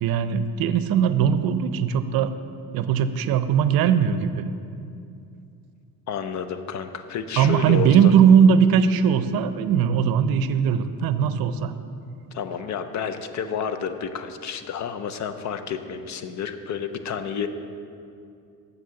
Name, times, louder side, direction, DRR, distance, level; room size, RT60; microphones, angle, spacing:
voice 1, 0.0-2.3 2.7-4.4 7.4-11.7, right 7 dB, 75° right, 11 dB, 0.6 m, -19 dB
voice 2, 6.1-8.1 12.3-17.5, left 7 dB, 50° left, 9 dB, 0.6 m, -30 dB
7.4 x 6.3 x 6.9 m, 2.5 s
cardioid pair, 135°, 36 cm